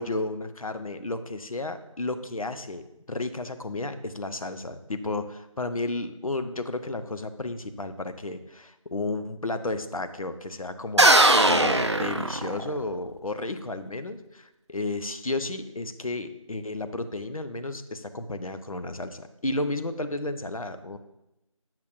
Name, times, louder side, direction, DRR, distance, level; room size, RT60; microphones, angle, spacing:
voice 1, 0.0-11.1 11.5-21.0, left 2 dB, 80° left, 10 dB, 0.6 m, -32 dB
sound 1, 11.0-12.9, right 1 dB, 55° right, 0.4 m, -20 dB
7.3 x 5.9 x 2.5 m, 0.89 s
figure-of-eight pair, 180°, 18 cm